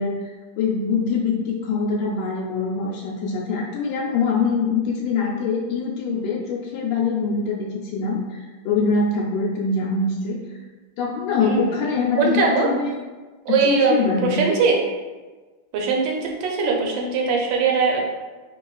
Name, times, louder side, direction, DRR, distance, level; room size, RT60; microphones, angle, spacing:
voice 1, 0.0-10.4 11.0-12.9 13.5-14.4, left 4 dB, 80° left, -2 dB, 1.3 m, -24 dB
voice 2, 11.4-11.8 12.2-12.7 13.5-14.8 15.7-18.0, right 4 dB, 80° right, 0 dB, 1.4 m, -21 dB
4.8 x 2.9 x 2.3 m, 1.3 s
omnidirectional pair, 2.1 m